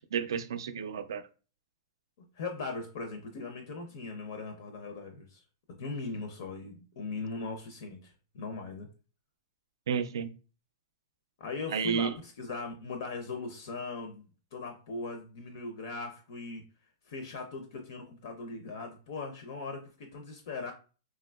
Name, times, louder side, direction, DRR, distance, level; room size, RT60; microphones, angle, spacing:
voice 1, 0.1-1.2 9.9-10.3 11.7-12.1, right 7 dB, 80° right, 0.3 m, -31 dB
voice 2, 2.2-5.4 5.8-8.9 11.4-16.6 17.1-20.7, left 3 dB, 50° left, 0.5 m, -39 dB
3.4 x 2.7 x 2.2 m
supercardioid pair, 170°, 2 cm